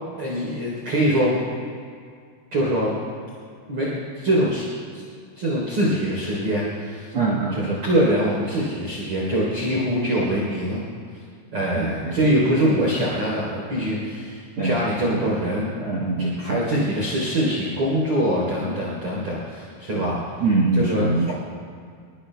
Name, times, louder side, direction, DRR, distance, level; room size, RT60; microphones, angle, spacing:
voice 1, 0.2-1.4 2.5-3.0 3.7-3.9 4.1-4.6 4.9-5.0 5.4-7.1 7.5-10.8 11.5-15.7 16.2-20.2 20.7-21.2, equal, 35° right, -6 dB, 4.4 m, -23 dB
voice 2, 7.1-7.8 11.7-12.3 14.6-14.8 15.1-15.3 15.8-16.6 19.9-21.3, right 3 dB, 70° right, -1 dB, 1.3 m, -24 dB
28.0 x 22.5 x 2.3 m, 2.2 s
omnidirectional pair, 4.8 m